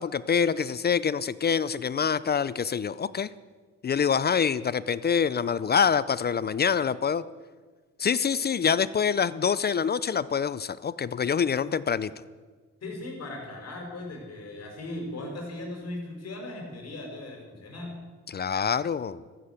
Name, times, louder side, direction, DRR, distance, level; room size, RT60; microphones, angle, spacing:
voice 1, 0.0-3.3 3.8-7.2 8.0-12.1 18.3-19.2, left 7 dB, 35° left, 17 dB, 0.5 m, -26 dB
voice 2, 12.8-17.9, left 2 dB, 55° left, 1 dB, 5.2 m, -38 dB
14.0 x 10.0 x 8.2 m, 1.4 s
cardioid pair, 90°, 30 cm